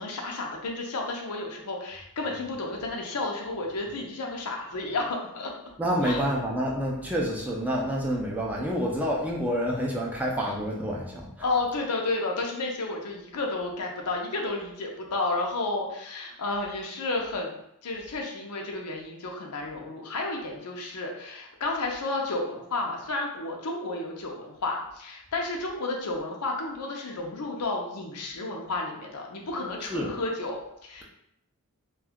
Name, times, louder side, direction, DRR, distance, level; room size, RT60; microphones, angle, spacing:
voice 1, 0.0-5.5 6.0-6.2 11.4-17.5 17.8-31.0, left 2 dB, 85° left, 1 dB, 0.6 m, -32 dB
voice 2, 5.8-11.5 29.8-30.1, equal, 5° right, -3 dB, 0.4 m, -28 dB
2.6 x 2.3 x 3.5 m, 0.77 s
head